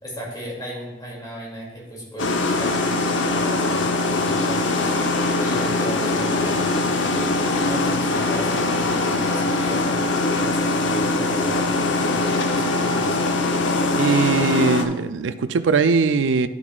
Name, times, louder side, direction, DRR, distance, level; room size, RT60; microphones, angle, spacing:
voice 1, 0.0-5.0 5.4-10.0 10.3-13.2, right 1 dB, 20° left, -4 dB, 2.4 m, -35 dB
sound 1, 2.2-14.8, left 2 dB, 85° left, 0.7 m, -22 dB
voice 2, 13.9-16.5, right 4 dB, 85° right, 12 dB, 0.4 m, -20 dB
10.5 x 6.0 x 2.4 m, 1.0 s
head